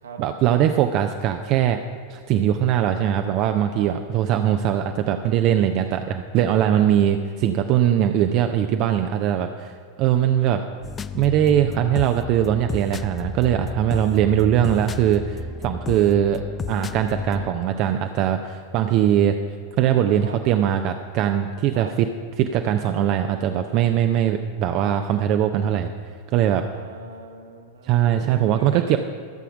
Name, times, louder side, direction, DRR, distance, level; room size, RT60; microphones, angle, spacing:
voice 1, 0.2-1.8 2.1-10.6 11.1-19.4 19.8-22.1 22.4-25.9 26.3-26.6 27.8-29.0, right 10 dB, 40° right, 7 dB, 0.6 m, -21 dB
sound 1, 10.8-17.5, left 5 dB, 20° left, 0.3 m, -33 dB
voice 2, 26.7-29.0, right 5 dB, 70° right, 4 dB, 1.4 m, -39 dB
14.5 x 7.0 x 6.0 m, 2.3 s
figure-of-eight pair, 90°, 0 cm